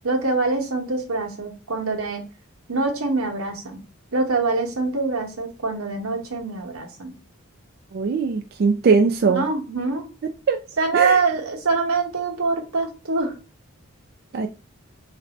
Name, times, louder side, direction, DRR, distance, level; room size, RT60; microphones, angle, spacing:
voice 1, 0.0-2.2 2.7-3.8 4.1-7.1 9.3-10.1 10.8-13.3, right 3 dB, 85° right, 2 dB, 1.1 m, -24 dB
voice 2, 7.9-9.4 10.5-10.6 10.9-11.2 14.3-14.5, right 5 dB, 45° right, 4 dB, 0.3 m, -20 dB
3.3 x 2.6 x 4.0 m, 0.34 s
head